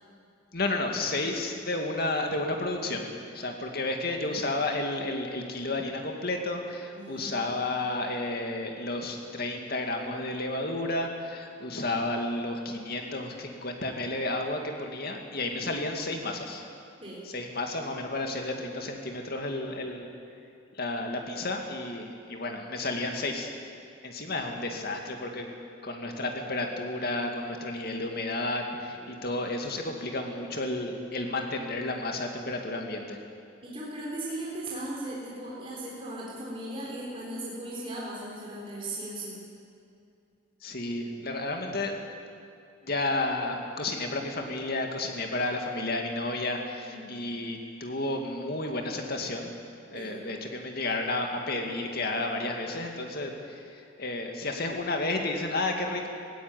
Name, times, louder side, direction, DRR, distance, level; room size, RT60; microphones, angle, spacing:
voice 1, 0.5-3.1 3.3-16.6 17.3-20.1 20.7-23.5 24.0-25.5 25.8-33.2 40.6-42.0 42.8-49.5 49.9-56.1, left 2 dB, 50° left, 3 dB, 2.4 m, -32 dB
voice 2, 6.9-7.5 17.0-17.2 28.9-29.2 33.6-39.4 46.8-47.1 49.9-50.2, right 1 dB, 30° right, -5 dB, 3.8 m, -38 dB
17.5 x 16.0 x 9.5 m, 2.5 s
head